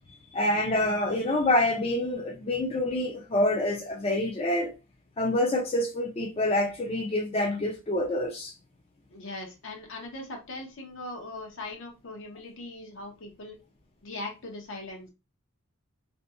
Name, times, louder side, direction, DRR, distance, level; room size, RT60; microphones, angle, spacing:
voice 1, 0.3-4.7 5.2-8.5, left 1 dB, 30° left, 0.4 m, -27 dB
voice 2, 9.1-13.6 14.0-15.1, left 2 dB, 65° left, 0.8 m, -40 dB
2.7 x 2.6 x 2.4 m
head